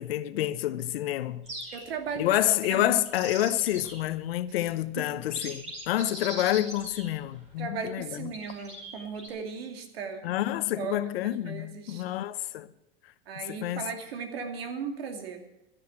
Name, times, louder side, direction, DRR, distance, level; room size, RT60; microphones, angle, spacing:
voice 1, 0.0-1.5 2.2-8.3 10.2-12.7 13.5-13.9, left 13 dB, 80° left, 0.9 m, -28 dB
sound 1, 1.5-2.1 2.8-4.1 4.7-4.8 5.2-7.5 8.3-9.3, right 1 dB, 25° right, 4.9 m, -41 dB
voice 2, 1.7-2.3 2.7-3.0 4.6-4.7 5.0-5.2 7.6-10.2 10.8-11.0 11.2-12.0 13.3-15.4, right 6 dB, 80° right, 2.5 m, -37 dB
12.0 x 10.5 x 7.6 m
supercardioid pair, 120°, 29 cm